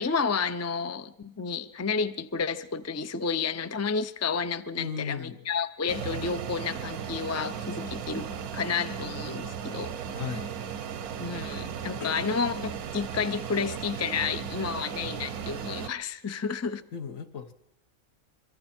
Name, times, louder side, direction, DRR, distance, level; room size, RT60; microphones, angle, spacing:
voice 1, 0.0-9.9 11.2-16.8, left 5 dB, 20° left, 0.4 m, -31 dB
voice 2, 4.8-5.4 10.1-10.5 12.0-12.3 16.9-17.5, left 6 dB, 65° left, 1.7 m, -36 dB
Fixed-wing aircraft airplane, 5.9-15.9, right 7 dB, 85° right, 1.4 m, -36 dB
26.0 x 23.0 x 4.4 m
omnidirectional pair, 1.5 m